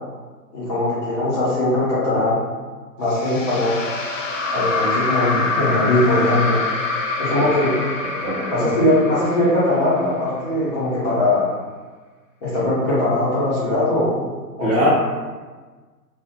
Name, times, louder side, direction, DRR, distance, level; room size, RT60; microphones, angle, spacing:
voice 1, 0.5-2.4 3.0-3.8 4.5-6.6 7.2-7.7 8.5-11.5 12.4-14.2 14.6-14.8, left 1 dB, 25° left, -11 dB, 0.8 m, -20 dB
sound 1, 3.1-10.4, left 3 dB, 55° left, 0.5 m, -25 dB
voice 2, 8.0-8.7 14.6-14.9, equal, 10° right, -14 dB, 1.0 m, -23 dB
2.5 x 2.1 x 3.6 m, 1.4 s
figure-of-eight pair, 120°, 50 cm